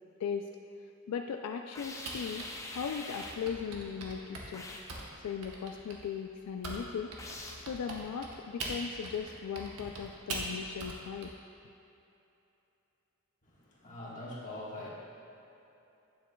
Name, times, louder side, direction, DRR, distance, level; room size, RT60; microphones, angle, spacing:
voice 1, 1.1-2.5 2.7-4.7 5.2-7.1 7.6-11.3, left 7 dB, 80° left, 7 dB, 0.3 m, -38 dB
sound 1, 1.7-3.5 4.5-5.0 7.2-7.7, left 2 dB, 15° left, 0.4 m, -44 dB
Typing, 2.1-6.8 7.1-11.3, right 2 dB, 75° right, 0.9 m, -42 dB
voice 2, 13.4-14.9, left 1 dB, 35° left, -6 dB, 1.4 m, -43 dB
9.1 x 7.4 x 2.2 m, 2.9 s
head